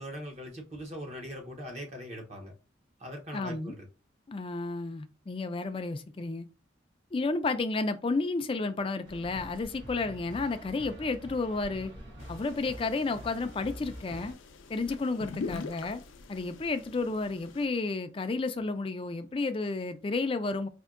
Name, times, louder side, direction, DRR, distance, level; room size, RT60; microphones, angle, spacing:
voice 1, 0.0-2.5 3.0-3.9, equal, 35° right, 0.8 m, -41 dB
voice 2, 3.3-3.7 4.3-6.5 7.1-11.9 12.3-14.4 14.7-16.0 16.3-20.7, left 3 dB, 30° left, 0.3 m, -32 dB
sound 1, 9.0-14.3, equal, 80° right, 1.7 m, -46 dB
sound 2, 12.2-17.7, left 4 dB, 85° left, 0.5 m, -44 dB
4.3 x 2.7 x 2.5 m
head